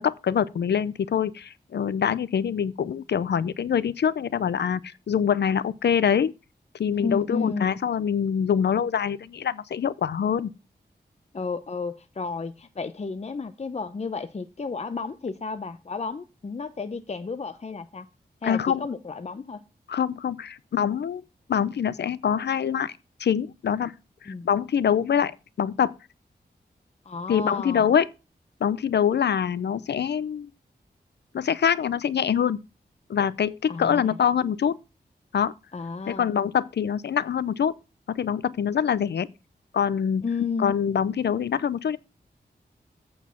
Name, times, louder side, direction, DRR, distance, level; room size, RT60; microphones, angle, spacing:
voice 1, 0.0-4.8 5.1-6.3 6.8-10.5 18.4-18.8 19.9-21.2 21.5-22.9 23.2-23.9 24.2-25.3 25.6-25.9 27.3-28.1 28.6-30.5 31.3-32.6 33.1-34.8 35.3-35.5 36.1-37.7 38.1-39.3 39.7-40.2 40.6-42.0, left 8 dB, 85° left, 0.6 m, -24 dB
voice 2, 6.9-7.7 11.3-18.1 18.4-19.6 24.3-24.5 27.1-27.9 33.7-34.2 35.7-36.3 40.2-40.7, left 4 dB, 40° left, 0.6 m, -32 dB
8.3 x 4.7 x 7.0 m
wide cardioid pair, 65°, 17 cm